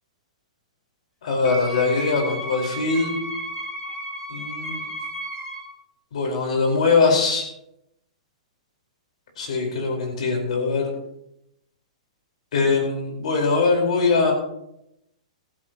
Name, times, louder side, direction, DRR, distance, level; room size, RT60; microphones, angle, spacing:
voice 1, 1.2-3.1 4.3-4.8 6.1-7.5 9.4-10.9 12.5-14.3, left 4 dB, 70° left, 1 dB, 4.8 m, -22 dB
Wind instrument woodwind instrument, 1.4-5.7, equal, 20° left, 5.1 m, -33 dB
15.0 x 14.5 x 3.1 m, 0.81 s
hypercardioid pair, 145°, 4 cm